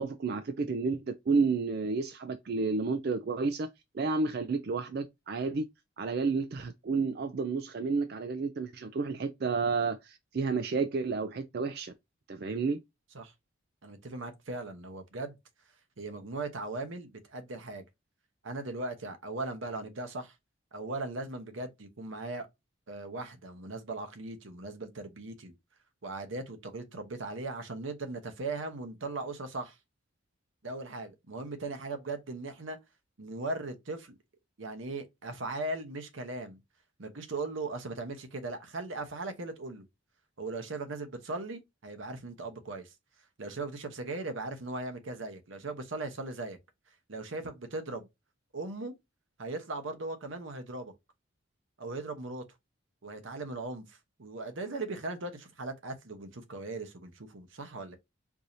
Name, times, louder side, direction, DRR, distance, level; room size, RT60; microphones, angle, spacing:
voice 1, 0.0-3.7 3.9-5.7 6.0-11.9 12.3-12.8, right 4 dB, 50° right, 0.4 m, -31 dB
voice 2, 13.8-15.3 16.0-17.8 18.4-20.3 20.7-22.5 22.9-25.5 26.0-29.8 30.6-32.8 33.2-34.2 34.6-36.6 37.0-39.8 40.4-42.9 43.4-46.6 47.1-48.1 48.5-48.9 49.4-50.9 51.8-52.4 53.0-58.0, right 2 dB, 75° right, 0.9 m, -38 dB
4.7 x 2.7 x 2.6 m
head